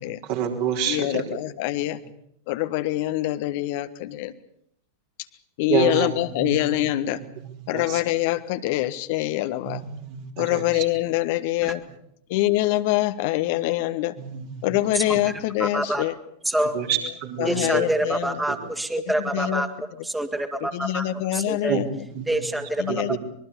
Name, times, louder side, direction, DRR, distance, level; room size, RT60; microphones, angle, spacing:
voice 1, 0.0-1.2 5.7-6.9 7.4-8.0 9.7-10.8 14.2-14.8 15.1-15.2 16.7-17.8 18.5-18.6 19.4-19.5 21.7-22.5 22.9-23.2, right 8 dB, 50° right, 2 dB, 4.0 m, -29 dB
voice 2, 0.9-2.0 2.5-4.3 5.6-7.2 7.7-9.8 10.4-11.8 12.3-14.1 14.6-16.1 17.4-18.4 19.2-19.6 20.7-21.8 22.8-23.2, left 16 dB, 50° left, 10 dB, 1.3 m, -25 dB
voice 3, 15.6-16.0 16.5-16.7 17.4-19.7 20.0-21.0 21.3-21.8 22.3-22.9, right 1 dB, 5° right, 7 dB, 2.2 m, -26 dB
24.5 x 22.0 x 7.0 m, 0.70 s
figure-of-eight pair, 90°, 0 cm